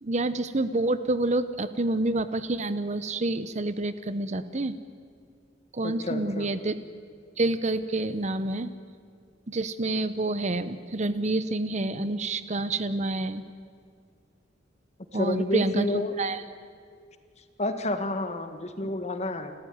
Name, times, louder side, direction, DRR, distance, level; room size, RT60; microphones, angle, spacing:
voice 1, 0.0-4.8 5.7-6.7 7.4-8.7 9.5-13.4 15.1-15.8 16.2-16.4, right 2 dB, 40° right, 13 dB, 0.9 m, -28 dB
voice 2, 5.8-6.5 15.1-16.2 17.6-19.5, left 1 dB, 35° left, 8 dB, 1.7 m, -30 dB
29.0 x 14.0 x 9.5 m, 2.2 s
head